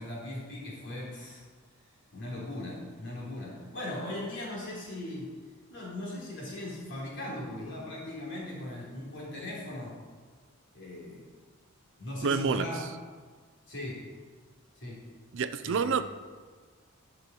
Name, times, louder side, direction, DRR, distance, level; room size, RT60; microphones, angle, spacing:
voice 1, 0.0-1.4 2.1-5.3 5.7-9.9 10.7-11.2 12.0-12.8 13.7-14.0 14.8-15.0 15.6-15.9, left 1 dB, 55° left, -4 dB, 3.6 m, -39 dB
voice 2, 12.2-12.7 15.3-16.0, right 5 dB, 60° right, 11 dB, 0.5 m, -27 dB
11.5 x 6.4 x 5.3 m, 1.5 s
head